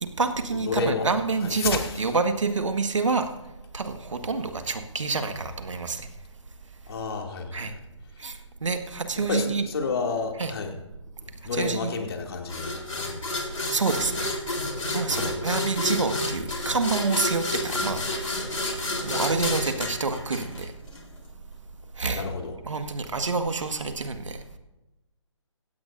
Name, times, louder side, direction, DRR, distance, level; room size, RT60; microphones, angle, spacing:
voice 1, 0.0-3.3 3.7-6.1 7.5-7.7 8.2-9.6 10.4-10.5 11.5-11.9 13.7-14.3 14.9-18.0 18.3-18.4 19.0-20.7 22.0-22.2 22.6-24.4, right 4 dB, 70° right, 7 dB, 1.6 m, -27 dB
voice 2, 0.6-1.1 1.4-1.9 6.9-7.8 9.3-10.7 11.4-13.8 15.1-15.3 22.1-22.5, left 4 dB, 50° left, 2 dB, 2.5 m, -31 dB
sound 1, 12.5-21.0, left 2 dB, 85° left, 3.7 m, -30 dB
16.5 x 16.5 x 2.6 m, 0.97 s
figure-of-eight pair, 145°, 16 cm